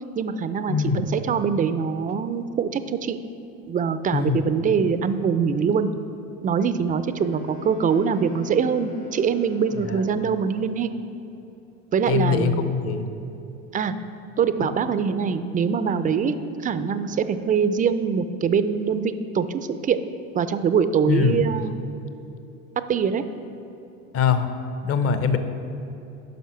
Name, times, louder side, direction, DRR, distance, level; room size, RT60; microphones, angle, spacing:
voice 1, 0.2-3.2 3.7-5.9 6.4-10.9 11.9-12.7 13.7-13.9 14.4-20.0 20.3-21.8 22.9-23.2, right 6 dB, 20° right, 11 dB, 0.4 m, -23 dB
voice 2, 0.7-1.0 4.1-4.4 9.9-10.0 12.1-13.0 21.1-21.4 24.1-24.5 24.8-25.4, left 6 dB, 35° left, 9 dB, 0.8 m, -22 dB
Wind instrument woodwind instrument, 7.1-10.8, left 4 dB, 70° left, 2.3 m, -42 dB
9.3 x 5.7 x 5.7 m, 2.9 s
hypercardioid pair, 95°, 39 cm